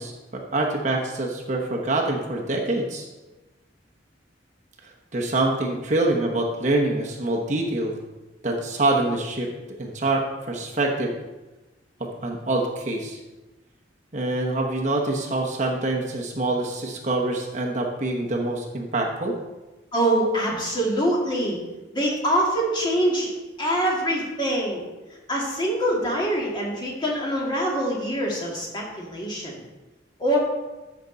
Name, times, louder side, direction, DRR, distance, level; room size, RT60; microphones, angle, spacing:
voice 1, 0.0-3.1 5.1-8.0 8.4-11.1 12.0-13.2 14.1-19.3, right 2 dB, 40° right, 0 dB, 1.1 m, -25 dB
voice 2, 19.9-21.6 21.9-23.3 23.6-24.8 25.3-29.6 30.2-30.4, right 1 dB, 25° left, -3 dB, 2.2 m, -24 dB
14.0 x 6.1 x 4.0 m, 1.1 s
head